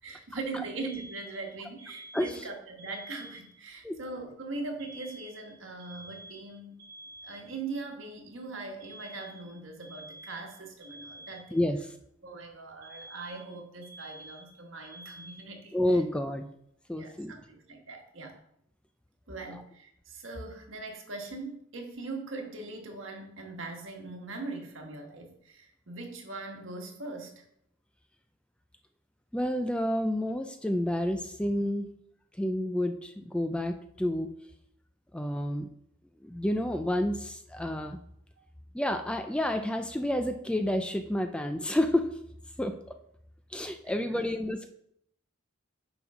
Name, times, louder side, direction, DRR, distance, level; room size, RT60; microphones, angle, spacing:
voice 1, 0.0-6.8 7.2-11.6 12.2-16.0 17.0-18.4 19.3-27.4 43.8-44.4, right 3 dB, 70° right, 2 dB, 1.5 m, -41 dB
Alarm, 0.8-3.7 4.8-7.8 8.8-11.8 12.8-15.8, right 1 dB, 50° right, 3.1 m, -49 dB
voice 2, 2.1-2.5 3.8-4.0 11.5-11.9 15.7-16.5 16.9-17.3 29.3-31.9 32.4-34.3 35.1-35.7 36.2-38.0 38.7-42.1 42.6-42.9 43.5-44.7, left 1 dB, 5° left, 7 dB, 0.3 m, -29 dB
9.4 x 5.3 x 3.6 m, 0.73 s
head